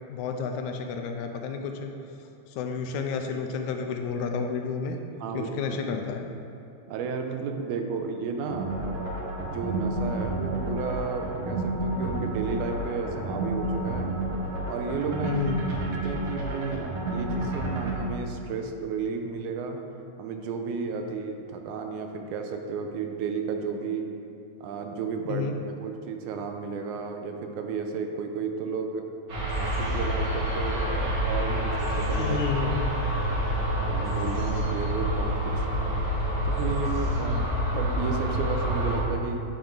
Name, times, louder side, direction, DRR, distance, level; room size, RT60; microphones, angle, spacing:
voice 1, 0.1-1.9 2.5-5.0 5.3-6.3 15.2-15.6 25.3-25.6 32.2-32.9, left 5 dB, 80° left, 4 dB, 1.8 m, -31 dB
voice 2, 5.2-5.8 6.9-14.1 14.7-15.4 16.0-19.8 20.2-24.1 24.6-25.5 25.8-29.0 29.6-32.4 33.8-35.7 36.5-39.4, right 5 dB, 85° right, 4 dB, 2.1 m, -33 dB
sound 1, 8.5-18.0, right 1 dB, 60° right, 1.5 m, -30 dB
sound 2, 29.3-39.0, equal, 35° right, 1.7 m, -27 dB
8.9 x 5.4 x 3.8 m, 2.7 s
omnidirectional pair, 3.4 m